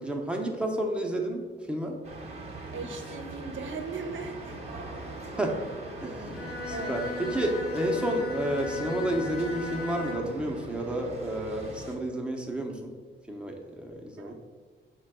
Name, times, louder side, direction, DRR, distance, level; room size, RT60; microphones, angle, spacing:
voice 1, 0.0-2.0 5.4-5.6 6.0-12.9 13.3-14.4, right 1 dB, 5° right, 1 dB, 0.6 m, -31 dB
sound 1, 2.0-11.9, right 2 dB, 30° right, 0.8 m, -41 dB
voice 2, 2.7-4.8 6.7-7.0 14.2-14.4, right 4 dB, 70° right, 5 dB, 0.6 m, -38 dB
Bowed string instrument, 6.3-10.5, left 3 dB, 50° left, 0.6 m, -38 dB
5.0 x 2.2 x 4.8 m, 1.4 s
wide cardioid pair, 120°, 20 cm